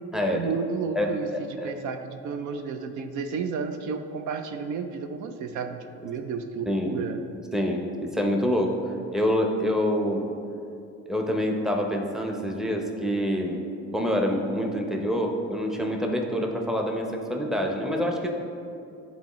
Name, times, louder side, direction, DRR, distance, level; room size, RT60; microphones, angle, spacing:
voice 1, 0.3-7.2, right 5 dB, 75° right, 7 dB, 0.5 m, -32 dB
voice 2, 1.0-1.7 6.7-7.0 7.5-8.7 9.1-10.3 11.1-13.6 13.9-18.3, equal, ahead, 1 dB, 0.7 m, -26 dB
9.5 x 3.9 x 3.0 m, 2.6 s
cardioid pair, 90°, 30 cm